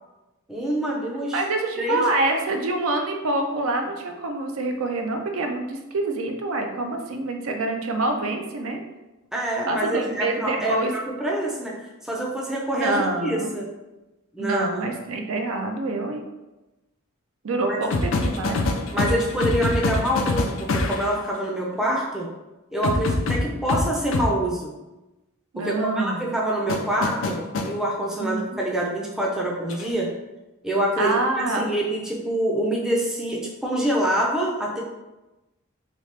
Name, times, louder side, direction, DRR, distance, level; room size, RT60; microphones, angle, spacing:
voice 1, 0.5-1.4 1.8-2.0 9.3-11.7 12.0-13.7 14.3-14.9 17.7-17.8 18.9-22.3 22.7-24.7 25.6-30.1 30.6-34.8, right 1 dB, ahead, -3 dB, 0.4 m, -26 dB
voice 2, 1.3-8.8 9.7-10.9 12.8-13.5 14.4-16.2 17.4-18.6 25.5-26.2 28.2-28.4 31.0-31.7, right 2 dB, 70° right, 4 dB, 0.5 m, -26 dB
sound 1, 17.9-21.1 22.8-24.3 26.7-27.7 29.7-29.9, left 2 dB, 60° left, 0.4 m, -24 dB
3.0 x 2.8 x 3.2 m, 1.0 s
head